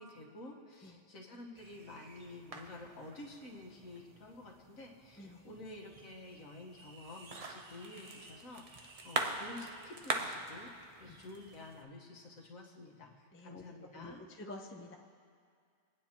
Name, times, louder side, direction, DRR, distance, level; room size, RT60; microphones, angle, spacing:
voice 1, 0.0-10.7 11.0-14.2, left 2 dB, 70° left, -1 dB, 1.8 m, -50 dB
sound 1, 1.6-11.8, right 2 dB, 35° right, 0.6 m, -44 dB
voice 2, 5.2-5.5 11.1-11.2 13.3-13.6 13.9-15.0, left 2 dB, 15° left, 2 dB, 0.5 m, -49 dB
27.0 x 9.2 x 3.0 m, 2.1 s
omnidirectional pair, 1.5 m